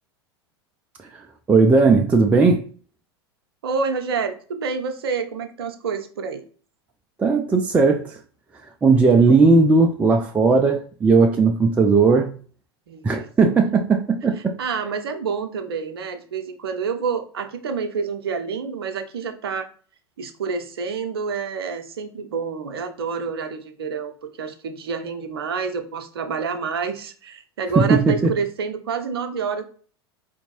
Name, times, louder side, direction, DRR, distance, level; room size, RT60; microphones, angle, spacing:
voice 1, 1.5-2.7 7.2-8.2 8.8-12.4 13.0-14.5 27.8-28.3, right 4 dB, 10° right, 0.3 m, -17 dB
voice 2, 3.6-6.4 9.3-9.4 12.9-13.0 13.7-13.8 14.6-19.7 20.2-24.1 24.4-29.6, right 5 dB, 65° right, 0.6 m, -28 dB
4.3 x 2.7 x 2.9 m
figure-of-eight pair, 85°, 14 cm